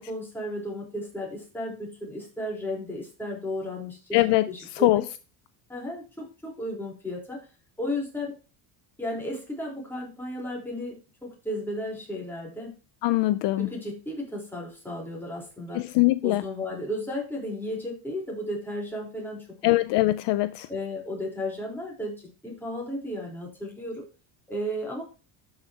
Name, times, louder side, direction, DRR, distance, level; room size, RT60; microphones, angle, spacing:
voice 1, 0.0-4.2 4.5-5.1 5.7-7.4 7.8-8.4 9.0-12.7 13.6-15.8 16.2-19.7 20.7-24.1 24.5-25.0, left 1 dB, 5° left, 4.0 m, -34 dB
voice 2, 4.1-5.0 13.0-13.7 15.7-16.4 19.6-20.7, left 18 dB, 60° left, 0.6 m, -22 dB
12.0 x 5.9 x 2.9 m
cardioid pair, 145°, 48 cm